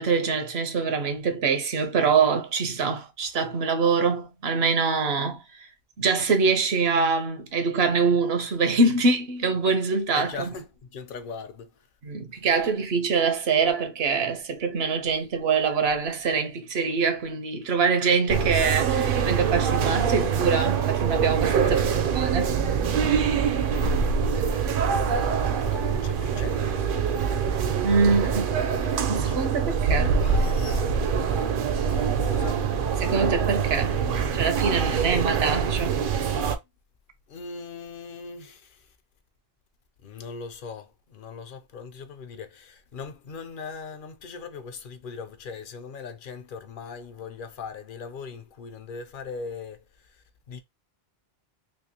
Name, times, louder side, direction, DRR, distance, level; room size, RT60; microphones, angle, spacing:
voice 1, 0.0-5.4 6.0-10.6 12.0-21.9 22.2-22.5 27.8-28.6 29.1-30.2 33.0-34.0 34.3-36.0, right 4 dB, 80° right, 1.0 m, -24 dB
voice 2, 10.1-11.7 21.6-22.1 23.5-27.5 28.3-29.5 30.2-30.9 32.2-32.6 34.8-35.0 37.3-38.9 40.0-50.2 50.5-50.6, left 5 dB, 60° left, 0.8 m, -40 dB
sound 1, 18.3-36.6, right 6 dB, 65° right, 0.7 m, -24 dB
3.3 x 2.8 x 2.8 m
omnidirectional pair, 1.0 m